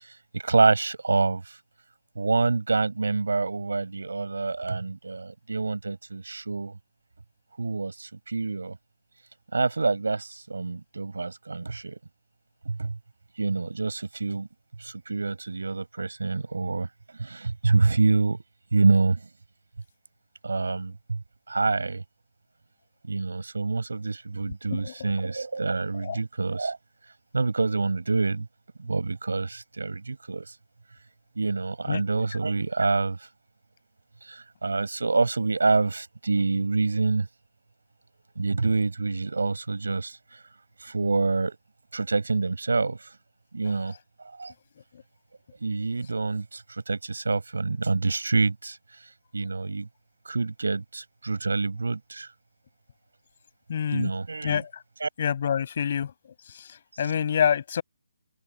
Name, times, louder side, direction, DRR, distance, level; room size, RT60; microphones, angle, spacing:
voice 1, 0.0-1.6 2.2-6.8 7.6-8.8 9.5-12.0 12.7-13.0 13.4-14.5 14.8-16.9 17.2-18.4 18.7-19.2 20.4-21.2 21.5-22.0 23.0-26.8 27.3-28.5 28.8-30.5 31.4-33.2 34.3-37.3 38.4-40.4 40.8-41.6 41.9-43.1 43.5-43.9 44.4-44.5 45.6-48.8 49.3-49.9 50.3-52.3 53.9-54.6 55.0-55.1, right 3 dB, 85° right, 6.9 m, -26 dB
voice 2, 24.7-25.1 26.0-26.2 31.9-32.0 53.7-54.1 54.4-54.7 55.2-56.1 57.0-57.8, left 8 dB, 45° left, 5.9 m, -26 dB
hypercardioid pair, 160°, 0 cm